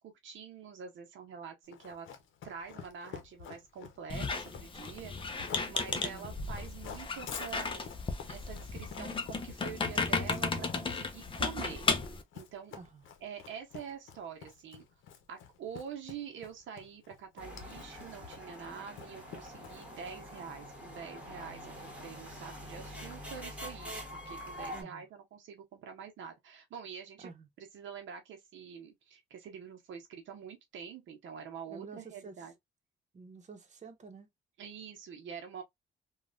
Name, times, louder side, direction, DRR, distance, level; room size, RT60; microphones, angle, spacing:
voice 1, 0.0-2.1 2.4-7.9 8.3-11.9 12.3-12.7 13.2-14.9 15.3-24.0 24.3-27.3 27.6-32.5 34.6-35.6, right 7 dB, 75° right, 0.8 m, -46 dB
Run, 1.7-20.4, left 7 dB, 75° left, 0.8 m, -48 dB
Squeak, 4.1-12.2, left 4 dB, 25° left, 0.6 m, -35 dB
voice 2, 5.9-6.3 12.7-13.0 24.7-25.1 27.2-27.5 31.7-32.3 33.1-34.3, right 4 dB, 35° right, 0.9 m, -49 dB
Womens Olympics Cyclists pass Ripley, 17.4-24.8, equal, 5° right, 1.4 m, -45 dB
3.1 x 2.3 x 2.4 m
cardioid pair, 90°, 20 cm